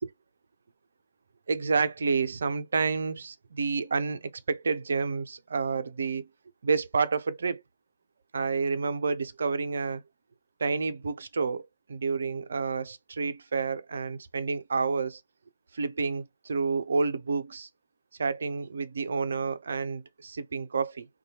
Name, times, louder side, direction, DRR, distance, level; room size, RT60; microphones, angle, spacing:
voice 1, 1.5-6.2 6.6-7.6 8.3-10.0 10.6-15.2 15.7-17.7 18.2-21.1, right 4 dB, 50° right, 0.4 m, -29 dB
2.7 x 2.2 x 2.8 m
figure-of-eight pair, 140°, 0 cm